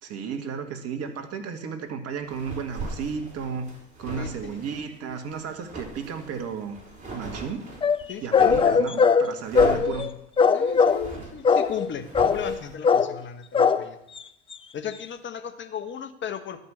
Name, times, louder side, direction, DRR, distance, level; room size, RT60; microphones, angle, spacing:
voice 1, 0.0-3.7 4.0-6.8 7.1-7.7 8.2-10.1, right 6 dB, 45° right, 6 dB, 1.8 m, -33 dB
sound 1, 2.2-8.8 9.4-12.7, right 3 dB, 20° right, 4.2 m, -40 dB
voice 2, 4.2-4.6 8.1-8.6 10.5-14.0 14.7-16.6, left 8 dB, 35° left, 9 dB, 1.2 m, -36 dB
sound 2, 7.8-10.1 10.4-11.1 11.4-11.9 12.1-12.6 12.8-13.2 13.5-13.8 14.2-14.3 14.5-14.6, left 5 dB, 15° left, 0.5 m, -20 dB
12.0 x 5.4 x 7.3 m, 0.83 s
hypercardioid pair, 80°, 34 cm